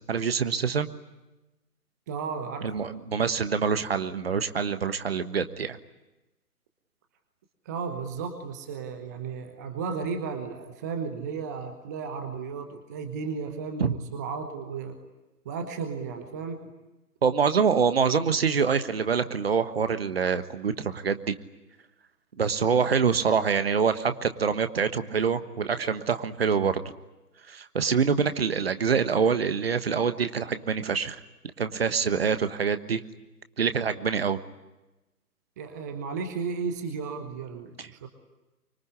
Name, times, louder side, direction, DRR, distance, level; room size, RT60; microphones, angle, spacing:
voice 1, 0.1-0.9 2.6-5.8 13.8-13.9 17.2-21.3 22.4-26.7 27.5-31.2 31.6-33.0 33.6-34.4, right 6 dB, 40° right, 11 dB, 1.4 m, -25 dB
voice 2, 2.1-2.7 7.6-15.0 15.4-16.6 35.6-38.1, right 5 dB, 10° right, 6 dB, 1.0 m, -34 dB
25.0 x 23.0 x 10.0 m, 1.0 s
figure-of-eight pair, 145°, 47 cm